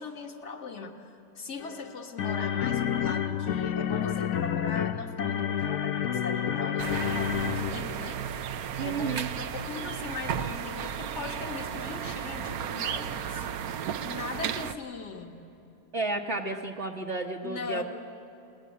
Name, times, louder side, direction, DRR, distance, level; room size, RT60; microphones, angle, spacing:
voice 1, 0.0-8.2 8.8-13.4 14.0-15.4 17.4-17.8, left 4 dB, 50° left, 3 dB, 2.0 m, -39 dB
sound 1, 1.6-8.0, left 9 dB, 65° left, 1.2 m, -29 dB
sound 2, 6.8-14.8, right 8 dB, 75° right, 1.2 m, -34 dB
voice 2, 8.8-9.3 15.9-17.8, right 3 dB, 50° right, -1 dB, 1.4 m, -32 dB
29.5 x 20.0 x 8.5 m, 2.9 s
omnidirectional pair, 1.6 m